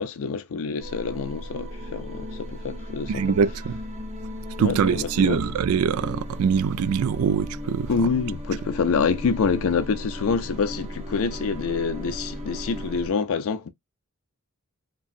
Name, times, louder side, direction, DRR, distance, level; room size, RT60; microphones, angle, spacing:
voice 1, 0.0-3.3 4.6-5.4 7.9-13.7, left 5 dB, 65° left, 0.4 m, -26 dB
sound 1, 0.8-13.1, equal, 30° right, 0.7 m, -36 dB
voice 2, 3.1-3.8 4.6-7.9, right 6 dB, 70° right, 0.3 m, -23 dB
2.9 x 2.6 x 2.4 m
head